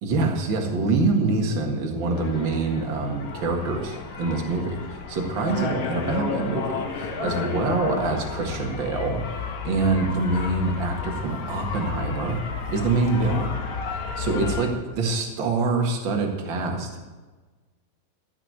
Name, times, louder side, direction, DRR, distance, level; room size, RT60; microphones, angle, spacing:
voice 1, 0.0-4.8 5.1-12.4 12.7-13.5 14.2-14.7 15.0-17.0, right 3 dB, 45° right, 2 dB, 1.9 m, -25 dB
sound 1, 2.1-14.7, left 5 dB, 55° left, 1.8 m, -32 dB
14.5 x 6.1 x 9.4 m, 1.3 s
omnidirectional pair, 4.1 m